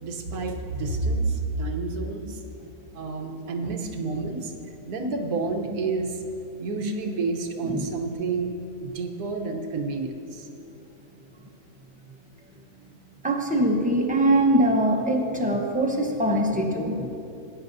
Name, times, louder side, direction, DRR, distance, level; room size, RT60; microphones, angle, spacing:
voice 1, 0.0-2.7 2.9-4.5 4.9-6.2 6.6-8.6 8.8-10.8, right 3 dB, 85° right, 4 dB, 1.5 m, -29 dB
voice 2, 13.2-17.1, right 1 dB, 5° right, 0 dB, 0.8 m, -22 dB
18.5 x 10.5 x 2.7 m, 2.7 s
omnidirectional pair, 1.6 m